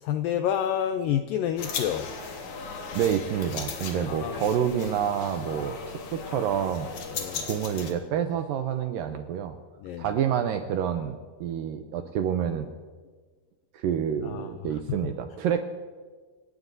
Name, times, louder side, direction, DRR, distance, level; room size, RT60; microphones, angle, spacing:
voice 1, 0.0-2.1 4.1-4.5 7.1-7.5 9.8-10.1 14.2-14.5 14.9-15.0, left 10 dB, 85° left, 7 dB, 2.0 m, -29 dB
sound 1, 1.6-7.9, left 5 dB, 55° left, 2.5 m, -37 dB
voice 2, 3.0-6.9 7.4-9.6 10.0-12.7 13.7-15.6, right 8 dB, 80° right, 7 dB, 2.1 m, -28 dB
28.5 x 17.5 x 2.7 m, 1.5 s
omnidirectional pair, 4.6 m